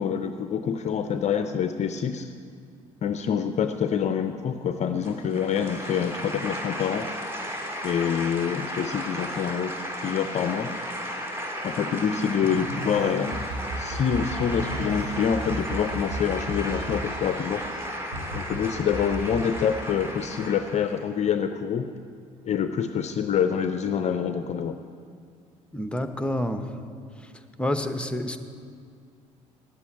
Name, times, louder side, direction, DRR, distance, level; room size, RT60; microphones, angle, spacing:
voice 1, 0.0-2.3 3.0-7.1 7.8-9.7 10.0-10.7 11.6-13.5 13.8-17.6 18.3-21.9 22.4-24.8, left 7 dB, 40° left, 9 dB, 0.6 m, -26 dB
sound 1, 5.0-21.1, equal, 15° right, 1.9 m, -34 dB
sound 2, 12.4-17.8 18.1-18.6 18.9-20.4, right 2 dB, 75° right, 3.1 m, -35 dB
voice 2, 25.7-26.7 27.6-28.4, left 1 dB, 5° left, 8 dB, 0.9 m, -28 dB
9.8 x 8.3 x 9.0 m, 2.2 s
hypercardioid pair, 60°, 17 cm